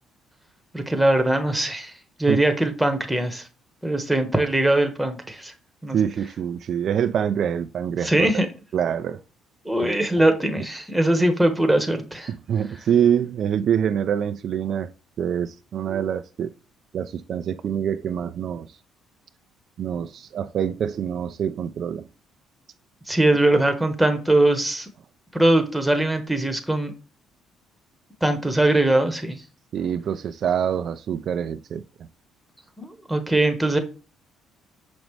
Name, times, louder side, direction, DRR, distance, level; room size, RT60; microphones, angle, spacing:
voice 1, 0.7-1.9 2.2-3.4 3.8-5.5 5.8-6.0 8.0-8.5 9.6-12.3 23.1-24.9 25.3-26.9 28.2-29.4 32.8-33.8, right 1 dB, 5° right, 1.0 m, -21 dB
voice 2, 5.9-8.3 8.7-9.2 9.8-9.9 12.5-14.9 15.2-16.5 16.9-18.7 19.8-22.1 29.7-31.8, right 8 dB, 55° right, 0.3 m, -25 dB
6.1 x 5.2 x 3.2 m
cardioid pair, 90°, 0 cm